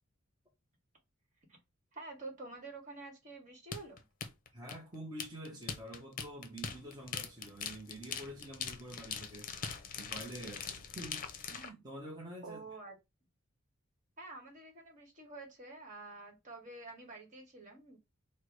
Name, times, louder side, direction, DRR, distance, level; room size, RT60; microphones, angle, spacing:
voice 1, 1.9-4.0 12.4-12.9 14.2-18.0, right 3 dB, 35° right, 1.6 m, -48 dB
sound 1, 3.7-11.7, left 6 dB, 40° left, 0.7 m, -42 dB
voice 2, 4.5-9.5 10.0-12.6, right 1 dB, 20° right, 1.0 m, -47 dB
4.6 x 2.2 x 4.6 m
head